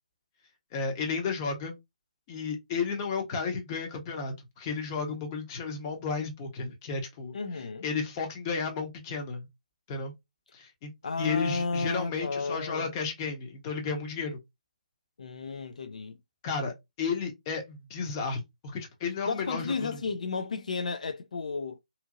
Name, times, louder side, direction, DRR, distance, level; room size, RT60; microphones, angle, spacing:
voice 1, 0.7-1.8 2.3-7.3 7.8-9.5 9.9-10.1 10.5-10.9 11.2-14.4 16.4-20.0, left 5 dB, 25° left, 0.8 m, -33 dB
voice 2, 7.3-7.9 11.0-12.9 15.2-16.2 19.3-21.8, left 4 dB, 60° left, 0.3 m, -33 dB
2.8 x 2.6 x 2.4 m
figure-of-eight pair, 145°, 4 cm